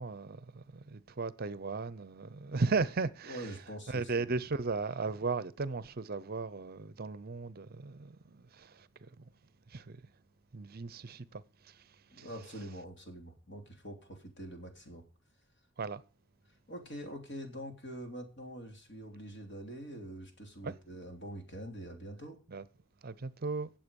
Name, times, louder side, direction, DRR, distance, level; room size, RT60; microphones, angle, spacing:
voice 1, 0.0-3.5 3.9-9.2 9.7-10.1 10.5-12.3 15.8-16.0 20.6-20.7 22.5-22.6 23.0-23.7, right 4 dB, 50° right, 0.6 m, -36 dB
voice 2, 3.3-4.3 12.1-15.0 16.7-22.4, right 1 dB, 60° left, 3.2 m, -45 dB
17.0 x 7.5 x 5.3 m
head